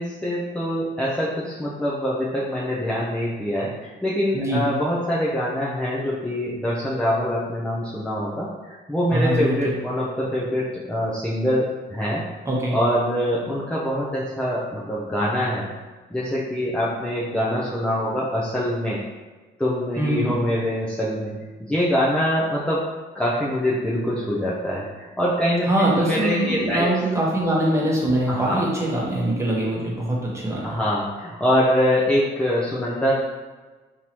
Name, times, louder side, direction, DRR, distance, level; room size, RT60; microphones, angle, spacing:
voice 1, 0.0-12.2 12.7-15.7 16.1-19.0 19.6-21.4 21.7-22.8 23.1-26.9 28.3-28.6 30.6-33.1, equal, 5° left, -7 dB, 0.6 m, -24 dB
voice 2, 9.1-9.6 12.5-12.7 20.0-20.4 25.7-30.8, right 1 dB, 15° right, -4 dB, 1.1 m, -23 dB
3.6 x 2.9 x 3.0 m, 1.3 s
cardioid pair, 90°, 20 cm